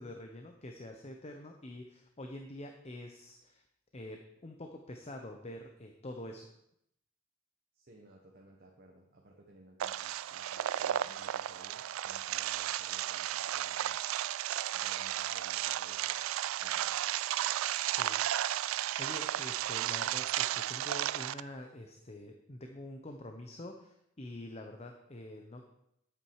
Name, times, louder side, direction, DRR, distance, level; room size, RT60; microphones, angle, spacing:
voice 1, 0.0-3.6 3.9-6.5 17.9-18.2 19.0-25.6, left 1 dB, 30° left, 4 dB, 0.8 m, -46 dB
voice 2, 7.7-14.0 14.7-17.0, right 1 dB, 45° right, -1 dB, 1.4 m, -59 dB
sound 1, 9.8-21.4, right 12 dB, 80° right, 0.3 m, -34 dB
10.5 x 8.7 x 4.8 m, 0.78 s
head